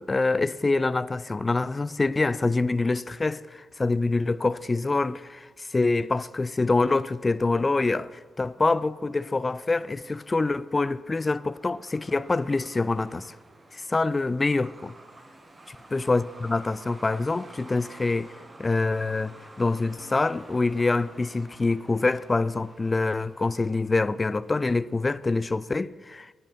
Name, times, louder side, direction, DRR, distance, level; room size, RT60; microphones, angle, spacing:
voice 1, 0.0-13.4 13.7-14.9 15.9-18.3 18.6-26.3, left 3 dB, 30° left, 0.4 m, -25 dB
Truck, 7.8-25.2, right 2 dB, 30° right, 1.8 m, -51 dB
12.0 x 9.4 x 5.6 m
hypercardioid pair, 45°, 0 cm